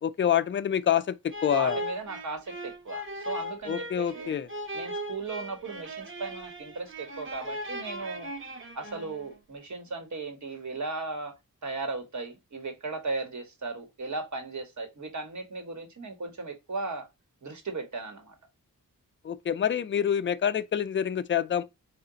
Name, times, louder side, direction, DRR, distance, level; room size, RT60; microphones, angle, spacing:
voice 1, 0.0-1.8 3.7-4.5 19.2-21.6, left 9 dB, 35° left, 0.4 m, -27 dB
sound 1, 1.3-9.4, equal, 35° right, 0.9 m, -38 dB
voice 2, 1.5-4.4 4.7-8.3 8.7-11.3 11.6-17.1 17.4-18.3, right 3 dB, 55° right, 1.4 m, -36 dB
4.7 x 2.5 x 3.8 m
wide cardioid pair, 75°, 34 cm